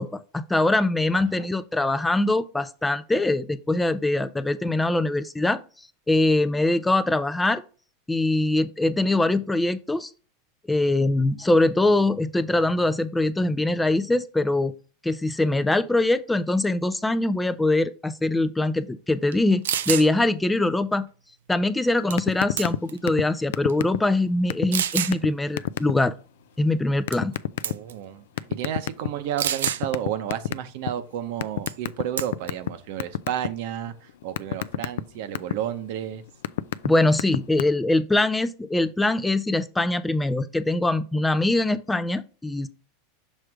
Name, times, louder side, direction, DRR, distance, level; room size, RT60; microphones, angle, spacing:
voice 1, 0.0-5.6 6.1-7.6 8.1-10.1 10.7-14.7 15.0-21.1 21.5-26.1 26.6-27.3 36.8-42.7, left 2 dB, 10° left, 0.4 m, -23 dB
voice 2, 1.1-1.4 27.6-28.2 28.5-33.9 34.2-36.2, right 10 dB, 65° right, 0.8 m, -31 dB
sound 1, 19.3-19.4 19.6-20.1 22.1-22.3 22.6-23.0 23.7-23.8 24.7-25.2 27.1-27.4 27.6-27.9 29.4-29.8 31.7-31.9 32.2-32.5, right 10 dB, 90° right, 0.4 m, -27 dB
sound 2, 22.2-22.8 23.1-23.3 23.5-24.2 24.5-24.7 25.1-25.3 25.6-25.9 27.1-27.7 28.4-29.3 29.7-30.9 31.4-32.7 33.0-33.5 33.9-35.5 36.1-36.9 37.1-37.6, left 13 dB, 80° left, 0.3 m, -26 dB
6.3 x 3.3 x 4.8 m
supercardioid pair, 120°, 0 cm